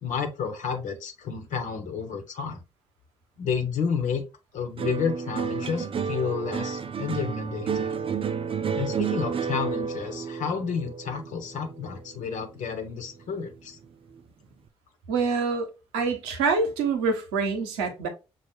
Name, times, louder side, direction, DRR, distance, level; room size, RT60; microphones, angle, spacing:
voice 1, 0.0-2.6 3.4-4.2 4.5-7.9 8.8-13.8, left 6 dB, 60° left, 1.1 m, -31 dB
sound 1, 4.8-13.2 13.6-14.2, right 6 dB, 40° right, 0.6 m, -31 dB
voice 2, 15.1-18.1, right 4 dB, 75° right, 0.9 m, -26 dB
6.1 x 2.4 x 3.3 m
hypercardioid pair, 45°, 15 cm